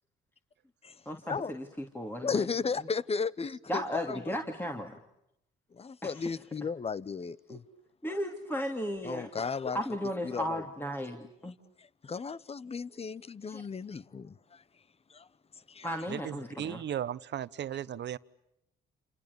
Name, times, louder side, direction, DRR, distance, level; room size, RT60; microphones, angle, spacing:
voice 1, 1.1-2.5 3.7-5.0 6.0-6.2 7.5-7.6 8.0-9.3 9.7-11.5 13.5-13.6 15.8-16.8, equal, 10° left, 2.8 m, -35 dB
voice 2, 2.2-4.4 5.7-7.6 9.0-9.8 10.2-10.6 11.8-14.6 15.1-15.3 15.7-15.9, left 5 dB, 30° left, 1.0 m, -35 dB
voice 3, 16.1-18.2, right 10 dB, 60° right, 1.0 m, -36 dB
29.0 x 28.5 x 7.0 m
cardioid pair, 90°, 20 cm